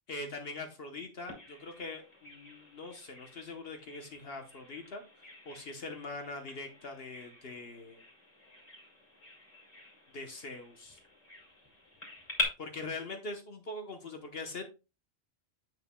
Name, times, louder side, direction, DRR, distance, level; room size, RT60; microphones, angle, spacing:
voice 1, 0.1-8.0 10.1-11.0 12.6-14.6, left 3 dB, 65° left, 5 dB, 1.2 m, -42 dB
Bird vocalization bird call bird song, 1.3-12.4, equal, 35° left, 2.6 m, -44 dB
8.4 x 6.9 x 2.2 m, 0.29 s
omnidirectional pair, 1.1 m